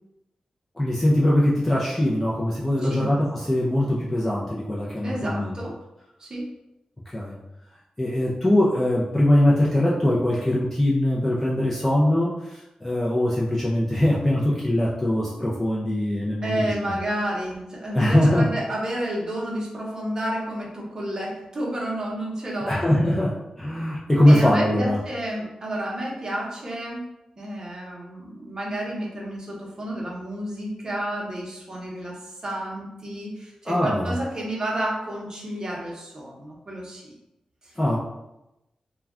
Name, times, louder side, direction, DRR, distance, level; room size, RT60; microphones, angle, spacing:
voice 1, 0.8-5.6 7.1-7.4 8.0-17.0 17.9-18.4 22.6-25.0 33.7-34.2 37.8-38.0, left 1 dB, 10° left, -6 dB, 0.4 m, -22 dB
voice 2, 5.0-5.8 6.2-6.5 16.4-22.8 24.2-27.1 27.4-37.1 37.6-37.7, right 1 dB, 35° right, -3 dB, 0.7 m, -30 dB
2.2 x 2.2 x 3.5 m, 0.92 s
wide cardioid pair, 115°, 2 cm